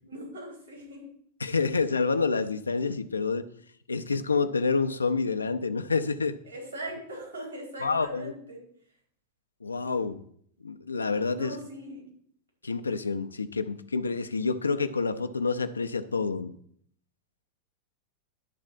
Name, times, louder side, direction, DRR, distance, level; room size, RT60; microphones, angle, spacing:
voice 1, 0.0-1.0 6.4-8.6 11.3-12.1, right 1 dB, 75° right, -1 dB, 4.7 m, -40 dB
voice 2, 1.4-3.5 3.9-6.4 7.8-8.3 9.6-10.2 10.6-11.6 12.6-16.5, left 4 dB, 75° left, 8 dB, 0.6 m, -28 dB
11.0 x 4.0 x 7.4 m, 0.64 s
figure-of-eight pair, 90°, 0 cm